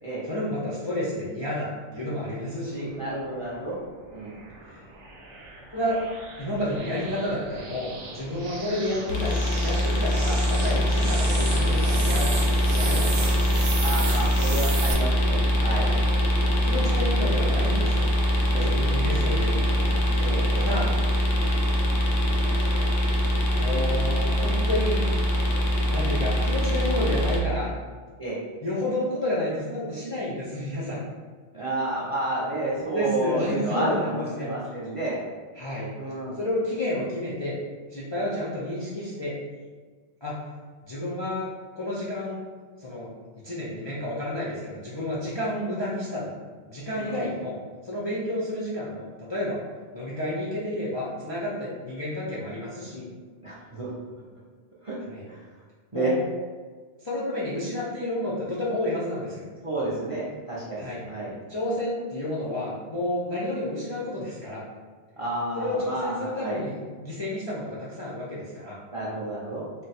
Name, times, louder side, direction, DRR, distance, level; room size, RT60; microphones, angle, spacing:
voice 1, 0.2-2.9 4.7-4.8 5.7-6.0 6.4-9.3 9.6-12.3 12.6-13.6 15.8-16.0 16.6-18.1 18.6-20.0 20.5-20.9 23.6-25.0 25.9-27.7 28.6-31.0 32.8-34.5 35.6-35.9 36.4-37.6 37.9-39.4 40.2-40.4 40.8-41.5 41.8-42.4 42.8-43.1 43.4-46.3 46.7-47.6 47.8-49.6 49.9-53.1 55.0-55.2 55.9-56.2 57.0-59.5 60.8-61.0 61.5-64.6 65.5-68.8, left 1 dB, 40° left, -8 dB, 0.4 m, -30 dB
voice 2, 3.0-3.8 4.1-4.4 13.8-15.9 18.5-18.7 20.2-20.9 28.2-28.4 31.5-35.2 36.0-36.4 47.0-47.3 53.4-53.9 54.8-55.0 55.3-55.4 55.9-56.1 59.6-61.4 65.2-66.6 68.9-69.6, right 1 dB, 50° right, -7 dB, 0.4 m, -30 dB
sound 1, 3.4-14.9, right 3 dB, 80° right, 0.9 m, -36 dB
sound 2, 9.1-27.4, equal, 85° left, 0.9 m, -23 dB
2.5 x 2.1 x 4.0 m, 1.5 s
omnidirectional pair, 1.2 m